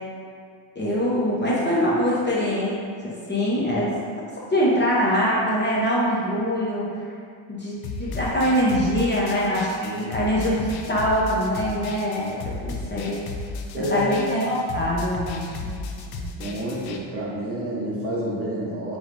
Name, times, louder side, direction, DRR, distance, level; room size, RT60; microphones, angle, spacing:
voice 1, 0.8-2.7 3.0-3.9 4.5-6.9 7.5-13.2 13.8-15.7, equal, 25° left, -6 dB, 0.8 m, -23 dB
sound 1, 7.8-17.0, left 3 dB, 55° left, 0.5 m, -34 dB
voice 2, 13.7-14.1 16.1-19.0, right 1 dB, 30° right, -6 dB, 0.8 m, -29 dB
4.8 x 3.2 x 2.6 m, 2.2 s
cardioid pair, 115°, 46 cm